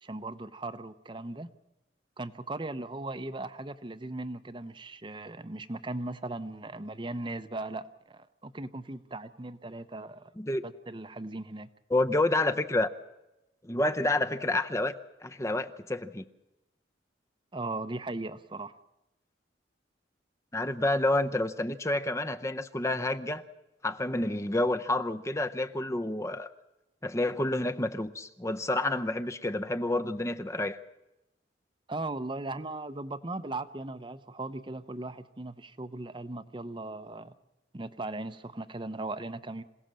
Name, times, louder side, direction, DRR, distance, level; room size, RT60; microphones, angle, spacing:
voice 1, 0.0-1.5 2.2-10.3 10.6-11.7 17.5-18.7 31.9-37.3 37.7-39.6, right 2 dB, 25° right, 11 dB, 0.7 m, -38 dB
voice 2, 11.9-12.9 13.6-14.9 15.2-16.3 20.5-23.4 23.8-26.5 27.0-30.8, left 2 dB, 15° left, 8 dB, 0.7 m, -29 dB
27.0 x 17.0 x 7.5 m, 0.96 s
head